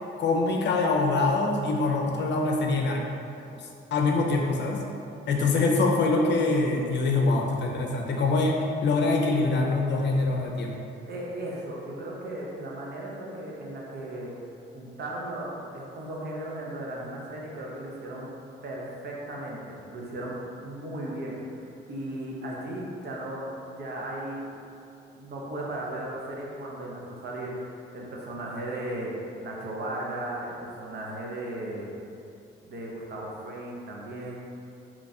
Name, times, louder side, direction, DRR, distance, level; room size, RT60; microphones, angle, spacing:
voice 1, 0.2-3.0 3.5-3.6 3.9-4.9 5.3-10.7, left 3 dB, 60° left, 1 dB, 0.5 m, -24 dB
voice 2, 11.1-14.3 14.7-18.3 18.6-23.5 23.8-24.5 25.2-29.1 29.4-31.9 32.7-34.4, right 1 dB, 55° right, -3 dB, 0.8 m, -36 dB
3.0 x 2.4 x 4.1 m, 2.6 s
cardioid pair, 90°, 20 cm